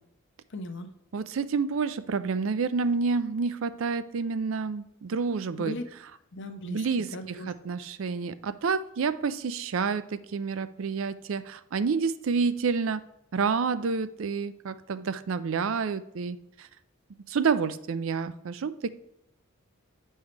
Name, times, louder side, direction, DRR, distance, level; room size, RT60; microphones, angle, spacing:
voice 1, 0.5-0.9 5.6-5.8 6.3-6.9 7.1-7.5, left 1 dB, 55° left, 6 dB, 0.8 m, -37 dB
voice 2, 1.1-5.8 6.6-13.0 13.3-16.7 17.3-18.9, right 5 dB, 65° right, 14 dB, 0.4 m, -29 dB
9.0 x 5.4 x 3.3 m, 0.80 s
head